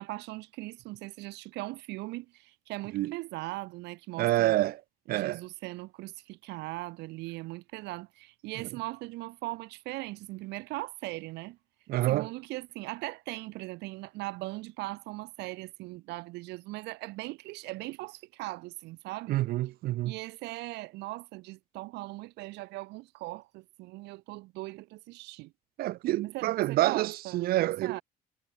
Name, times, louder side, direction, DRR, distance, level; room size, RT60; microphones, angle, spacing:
voice 1, 0.0-4.5 5.1-11.6 12.1-19.4 20.0-25.5 26.2-27.5 27.8-28.0, right 21 dB, 90° right, 1.2 m, -39 dB
voice 2, 4.2-4.8 5.1-5.4 11.9-12.3 19.3-20.1 25.8-28.0, right 16 dB, 65° right, 0.4 m, -27 dB
cardioid pair, 110°, 17 cm